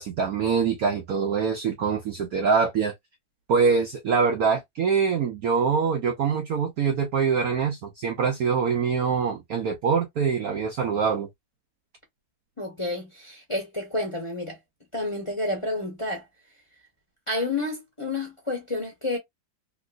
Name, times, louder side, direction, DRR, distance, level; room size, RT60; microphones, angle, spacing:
voice 1, 0.0-2.9 3.5-11.3, right 5 dB, 65° right, 0.9 m, -24 dB
voice 2, 12.6-14.6 14.9-16.3 17.3-19.2, left 2 dB, 20° left, 0.9 m, -30 dB
3.0 x 3.0 x 2.4 m
omnidirectional pair, 2.1 m